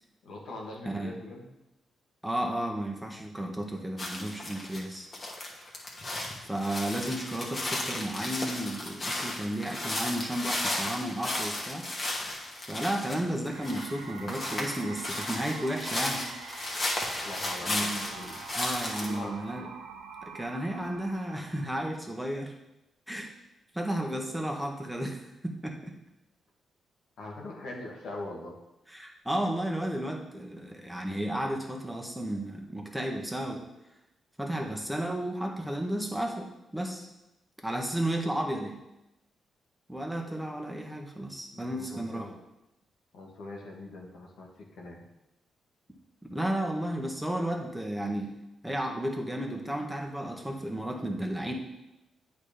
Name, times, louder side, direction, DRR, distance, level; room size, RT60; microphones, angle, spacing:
voice 1, 0.2-1.5 6.9-7.0 17.2-18.4 19.0-19.4 27.2-28.5 41.5-42.4 43.1-44.5 44.7-45.0, left 2 dB, 70° left, -2 dB, 1.7 m, -42 dB
voice 2, 2.2-5.1 6.4-11.9 12.7-16.3 17.6-18.0 18.5-19.7 20.2-22.5 23.1-23.3 23.7-26.0 28.9-33.6 34.4-37.1 37.6-38.7 39.9-42.3 46.3-48.3 48.6-51.5, right 1 dB, 5° right, 0 dB, 1.7 m, -33 dB
sound 1, 4.0-4.8 5.1-19.2, left 1 dB, 40° left, 2.1 m, -34 dB
sound 2, 13.5-21.9, right 5 dB, 85° right, 0.8 m, -46 dB
8.5 x 4.4 x 5.2 m, 0.91 s
hypercardioid pair, 40°, 0 cm